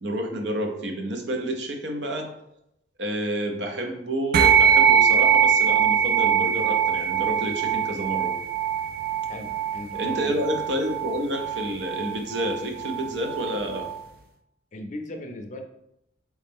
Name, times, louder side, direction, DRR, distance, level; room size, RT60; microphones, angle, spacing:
voice 1, 0.0-2.3 3.0-8.3 9.9-13.9, equal, 70° right, 3 dB, 0.7 m, -29 dB
sound 1, 4.3-14.0, right 8 dB, 55° right, 0.3 m, -22 dB
voice 2, 9.3-10.3 14.7-15.6, left 1 dB, 40° left, 5 dB, 0.5 m, -37 dB
4.1 x 3.1 x 3.5 m, 0.81 s
head